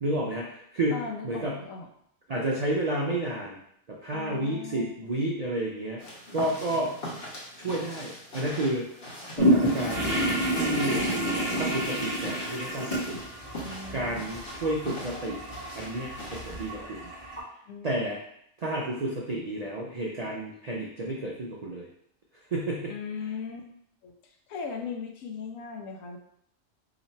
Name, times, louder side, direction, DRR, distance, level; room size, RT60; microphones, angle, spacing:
voice 1, 0.0-1.6 2.3-3.6 3.9-6.0 6.3-6.9 7.6-8.9 9.4-10.3 10.5-11.1 11.6-13.2 13.9-15.4 15.7-17.1 17.8-18.2 18.6-21.9 22.5-22.9, right 1 dB, 85° right, -3 dB, 0.3 m, -31 dB
voice 2, 0.9-1.9 4.1-5.1 13.6-14.3 17.7-17.9 22.9-23.7 24.0-24.1 24.5-26.2, left 5 dB, 80° left, 3 dB, 1.0 m, -38 dB
sound 1, 6.0-16.7, equal, 50° left, 1.2 m, -42 dB
sound 2, 9.4-17.4, equal, 20° left, 1.0 m, -29 dB
2.9 x 2.5 x 4.1 m, 0.69 s
omnidirectional pair, 1.4 m